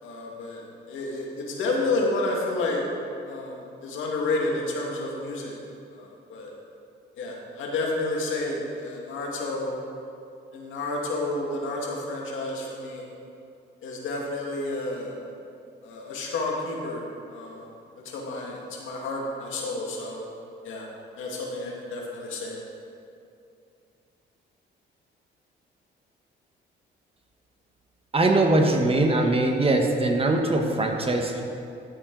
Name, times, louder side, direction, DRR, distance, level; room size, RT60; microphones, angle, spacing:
voice 1, 0.0-2.8 3.3-5.6 5.9-6.5 7.1-9.8 10.5-13.1 13.8-15.1 15.8-17.0 17.3-17.6 18.1-20.2 20.6-20.9 21.2-22.6, left 2 dB, 80° left, -2 dB, 2.1 m, -30 dB
voice 2, 28.1-31.4, right 2 dB, 30° right, 3 dB, 1.3 m, -22 dB
12.5 x 9.1 x 4.0 m, 2.6 s
cardioid pair, 90°, 20 cm